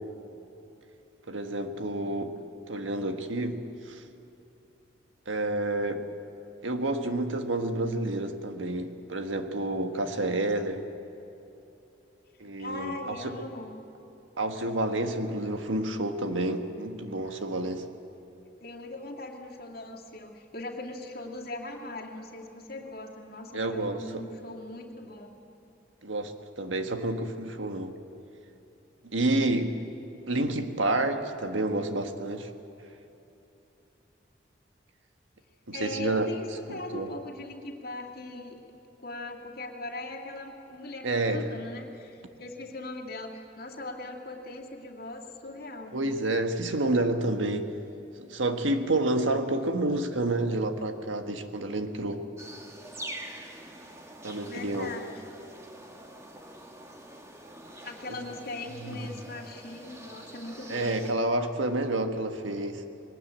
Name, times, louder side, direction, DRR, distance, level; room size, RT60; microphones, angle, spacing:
voice 1, 1.3-2.3 2.7-4.0 5.3-6.1 6.6-10.8 12.4-13.4 14.4-17.8 23.5-24.2 26.0-27.9 29.0-29.8 30.3-32.5 35.7-36.3 36.9-37.1 41.0-41.5 45.9-47.7 48.2-52.2 54.2-54.9 58.8-59.0 60.7-62.8, right 2 dB, 90° right, 6 dB, 1.6 m, -29 dB
voice 2, 12.6-13.8 18.6-25.3 35.7-46.1 54.5-55.2 57.8-61.0, left 2 dB, 50° left, 1 dB, 2.4 m, -40 dB
sound 1, 52.4-61.1, right 1 dB, 15° right, 1.7 m, -45 dB
21.5 x 19.5 x 8.9 m, 2.9 s
head